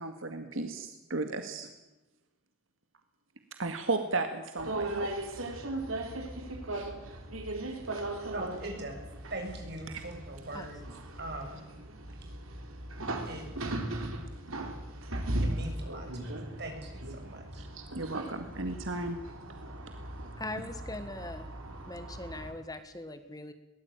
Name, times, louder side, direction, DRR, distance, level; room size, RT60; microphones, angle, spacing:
voice 1, 0.0-1.7 3.6-5.4 6.7-6.9 9.9-10.0 17.6-19.2 20.6-20.7, right 3 dB, 70° right, 6 dB, 2.0 m, -35 dB
sound 1, 4.6-22.5, right 1 dB, 90° right, 4.1 m, -38 dB
voice 2, 8.3-9.0 9.3-10.8 11.2-11.6 13.2-13.5 15.4-17.6, right 1 dB, 55° right, 3 dB, 6.9 m, -41 dB
voice 3, 20.4-21.5 21.9-23.5, left 2 dB, 20° left, 9 dB, 1.6 m, -41 dB
22.0 x 18.5 x 9.0 m, 1.0 s
head